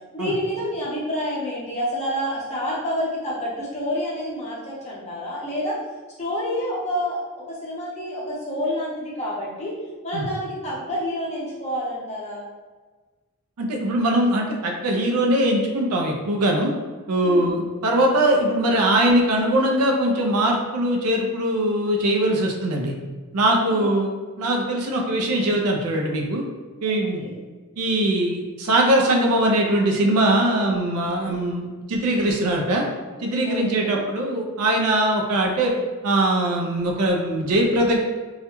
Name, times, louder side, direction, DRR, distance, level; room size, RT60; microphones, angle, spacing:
voice 1, 0.1-5.8 6.2-7.2 7.5-9.7 10.0-12.4 17.2-17.5 23.7-24.0 27.0-27.3 31.2-31.4 33.4-34.0, equal, 30° left, -6 dB, 0.7 m, -28 dB
voice 2, 13.6-16.7 17.1-22.9 23.3-26.4 26.8-27.2 27.8-32.8 33.2-35.7 36.0-38.0, right 1 dB, 80° right, 1 dB, 0.4 m, -21 dB
2.4 x 2.1 x 2.9 m, 1.3 s
head